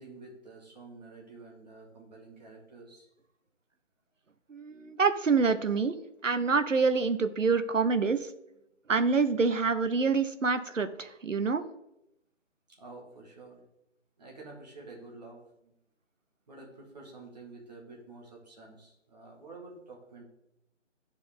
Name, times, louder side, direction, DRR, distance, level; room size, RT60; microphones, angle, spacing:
voice 1, 0.0-3.1 8.5-8.6 12.7-13.6 14.2-15.7 16.5-20.2, right 3 dB, 35° right, -1 dB, 2.1 m, -49 dB
voice 2, 4.5-5.9 6.2-8.3 8.9-11.6, right 4 dB, 85° right, 10 dB, 0.9 m, -26 dB
9.6 x 5.1 x 3.8 m, 0.85 s
figure-of-eight pair, 155°, 37 cm